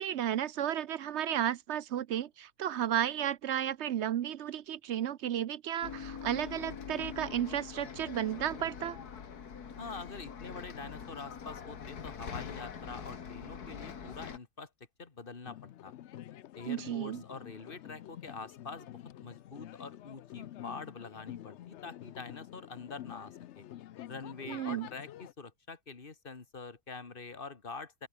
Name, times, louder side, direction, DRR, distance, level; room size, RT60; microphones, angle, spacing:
voice 1, 0.0-9.0 16.7-17.2 24.5-24.9, right 10 dB, 60° right, 0.7 m, -33 dB
Bus, 5.8-14.4, left 7 dB, 80° left, 2.2 m, -44 dB
voice 2, 9.8-14.7 15.0-15.9 16.6-23.7 24.1-28.1, left 4 dB, 35° left, 1.9 m, -45 dB
sound 1, 15.4-25.3, left 12 dB, 65° left, 0.7 m, -48 dB
open air
omnidirectional pair, 1.6 m